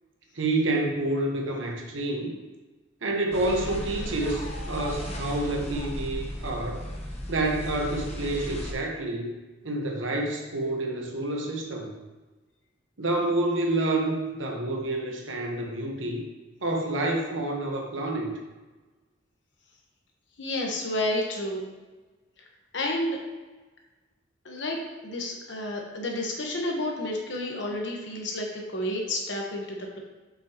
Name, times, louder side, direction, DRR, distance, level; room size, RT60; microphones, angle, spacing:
voice 1, 0.3-2.4 3.0-6.8 7.3-9.3 9.6-11.9 13.0-16.2 16.6-18.3, right 2 dB, 80° right, 0 dB, 1.2 m, -28 dB
sound 1, 3.3-8.7, left 1 dB, 35° left, 0.9 m, -35 dB
voice 2, 20.4-21.6 22.7-23.2 24.4-24.8 25.0-30.0, left 1 dB, 65° left, 0 dB, 1.2 m, -30 dB
7.6 x 5.4 x 3.0 m, 1.2 s
head